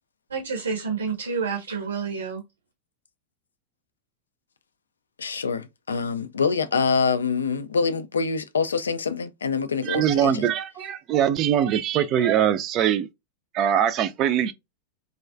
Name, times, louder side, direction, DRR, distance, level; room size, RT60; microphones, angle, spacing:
voice 1, 0.3-2.4, right 5 dB, 75° right, 0.6 m, -29 dB
voice 2, 5.2-10.5, left 5 dB, 70° left, 0.3 m, -25 dB
voice 3, 9.8-13.1 13.5-14.5, right 10 dB, 35° right, 0.4 m, -22 dB
2.4 x 2.3 x 2.2 m
figure-of-eight pair, 90°, 0 cm